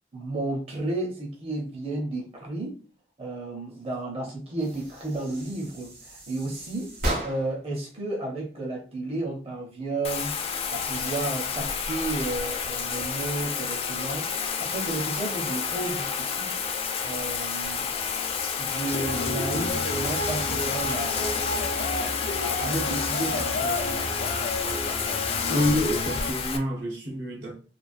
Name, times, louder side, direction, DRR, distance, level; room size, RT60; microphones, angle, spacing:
voice 1, 0.1-2.8 3.2-6.9 7.2-10.3 10.7-16.5 17.0-18.0 18.6-21.4 22.3-24.1, right 2 dB, 35° right, 0.6 m, -32 dB
sound 1, 4.6-7.7, right 1 dB, 60° right, 1.5 m, -34 dB
Bathtub (filling or washing), 10.0-26.6, left 6 dB, 35° left, 0.3 m, -30 dB
sound 2, 18.9-26.3, left 1 dB, 75° left, 0.7 m, -31 dB
voice 2, 25.5-27.6, equal, 75° right, 1.0 m, -27 dB
3.1 x 2.4 x 2.4 m
head